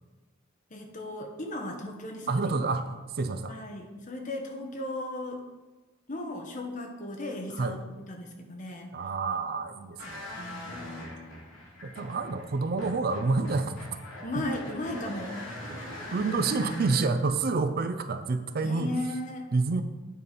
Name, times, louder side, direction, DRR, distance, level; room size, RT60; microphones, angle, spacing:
voice 1, 0.7-2.5 3.5-5.4 6.1-8.9 10.4-10.9 14.2-15.4 16.1-16.4 18.6-19.5, left 1 dB, 40° left, 2 dB, 1.1 m, -36 dB
voice 2, 2.3-2.9 3.2-3.5 7.6-7.8 8.9-10.3 11.8-13.7 14.4-14.5 16.1-18.9 19.5-19.8, right 3 dB, 45° right, 9 dB, 0.4 m, -28 dB
sound 1, 10.0-17.0, left 1 dB, 75° left, 2.8 m, -41 dB
9.0 x 4.2 x 5.1 m, 1.2 s
head